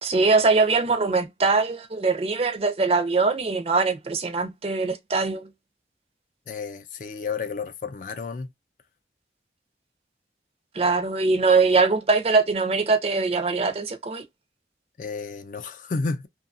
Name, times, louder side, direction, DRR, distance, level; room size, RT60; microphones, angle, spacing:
voice 1, 0.0-5.5 10.7-14.2, right 4 dB, 35° right, 0.5 m, -22 dB
voice 2, 6.5-8.5 15.0-16.3, left 4 dB, 45° left, 0.4 m, -31 dB
2.7 x 2.3 x 2.5 m
head